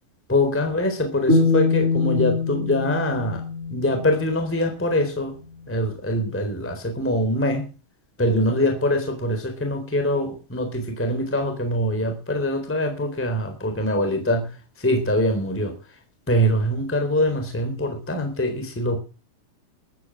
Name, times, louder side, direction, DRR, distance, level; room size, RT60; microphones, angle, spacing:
voice 1, 0.3-3.4 3.7-5.4 5.7-7.7 8.2-15.7 16.3-19.0, left 1 dB, 5° left, 5 dB, 3.4 m, -23 dB
sound 1, 1.3-4.4, left 3 dB, 15° right, 6.6 m, -23 dB
15.0 x 12.0 x 6.3 m, 0.35 s
omnidirectional pair, 4.0 m